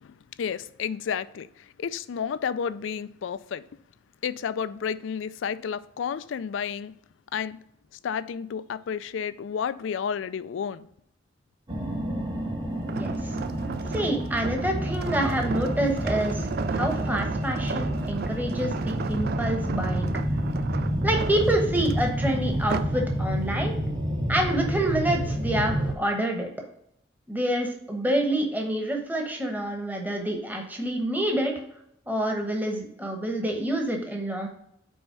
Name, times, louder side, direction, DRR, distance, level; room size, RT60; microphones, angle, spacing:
voice 1, 0.0-3.6 4.2-6.9 7.3-7.6 8.0-10.9, left 7 dB, 80° left, 0.4 m, -31 dB
sound 1, 11.7-25.9, equal, 25° right, 1.0 m, -29 dB
sound 2, 12.8-23.1 23.5-23.8, right 5 dB, 55° right, 0.3 m, -34 dB
voice 2, 13.0-13.3 13.9-20.1 21.0-23.7 24.3-26.5 27.3-31.6 32.1-34.5, right 1 dB, 10° right, 1.1 m, -27 dB
5.5 x 4.3 x 5.8 m
head